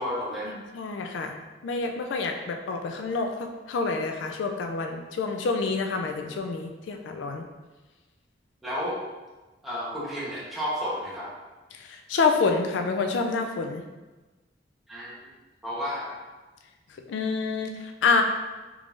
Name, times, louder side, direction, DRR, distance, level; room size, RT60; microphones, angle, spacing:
voice 1, 0.0-0.5 8.6-9.0 9.6-11.3 14.9-15.1 15.6-16.2, equal, ahead, -8 dB, 1.0 m, -31 dB
voice 2, 0.5-1.4 1.6-7.4 11.8-13.8 17.1-17.7 18.0-18.2, left 4 dB, 80° left, 4 dB, 0.3 m, -27 dB
3.6 x 3.1 x 2.5 m, 1.2 s
head